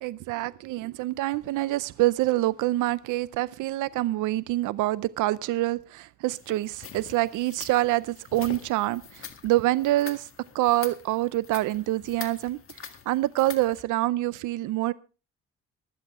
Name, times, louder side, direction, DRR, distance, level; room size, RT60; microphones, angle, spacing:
voice 1, 0.0-10.3 10.5-14.9, right 16 dB, 85° right, 0.5 m, -26 dB
sound 1, 6.3-13.8, left 7 dB, 45° left, 1.8 m, -44 dB
24.0 x 8.0 x 3.6 m
cardioid pair, 90°, 30 cm